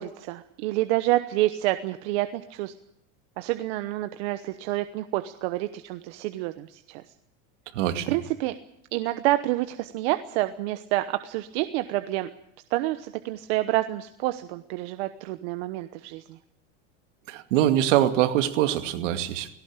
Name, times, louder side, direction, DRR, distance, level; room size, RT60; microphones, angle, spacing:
voice 1, 0.0-2.7 3.4-7.0 8.1-8.5 8.9-12.3 12.7-16.4, right 17 dB, 60° right, 9 dB, 1.1 m, -28 dB
voice 2, 7.7-8.2 17.3-19.5, right 12 dB, 75° right, 7 dB, 2.4 m, -23 dB
18.5 x 17.5 x 8.9 m, 0.77 s
supercardioid pair, 160°, 37 cm